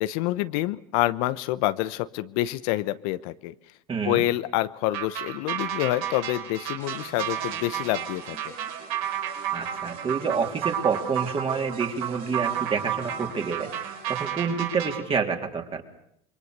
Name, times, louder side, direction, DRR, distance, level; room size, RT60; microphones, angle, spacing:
voice 1, 0.0-3.5 4.0-8.6, left 16 dB, 70° left, 14 dB, 1.0 m, -27 dB
voice 2, 3.9-4.2 9.5-15.8, right 5 dB, 30° right, 4 dB, 3.6 m, -28 dB
sound 1, 4.9-15.0, right 10 dB, 80° right, 4.9 m, -32 dB
sound 2, 6.8-14.3, right 7 dB, 50° right, 6.5 m, -44 dB
27.5 x 22.5 x 6.8 m, 0.73 s
supercardioid pair, 100°, 18 cm